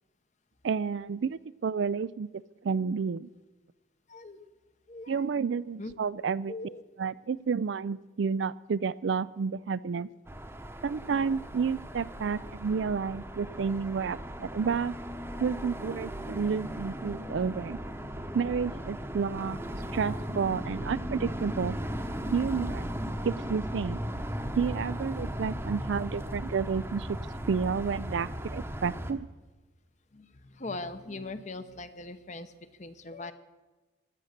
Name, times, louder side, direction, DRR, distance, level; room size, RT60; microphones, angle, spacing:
voice 1, 0.6-2.3 2.6-3.3 5.1-6.5 7.0-10.1 10.8-14.9 15.4-17.8 18.3-19.6 19.9-21.8 22.3-22.9 23.2-24.0 24.5-27.2 27.5-29.3, right 5 dB, 70° right, 18 dB, 0.4 m, -30 dB
voice 2, 4.1-4.5 4.9-5.3 5.8-5.9 6.5-6.8 30.1-32.5 32.8-33.3, left 2 dB, 35° left, 11 dB, 0.8 m, -40 dB
sound 1, 10.3-29.1, equal, 10° right, 0.9 m, -37 dB
16.0 x 11.0 x 6.6 m, 1.2 s
head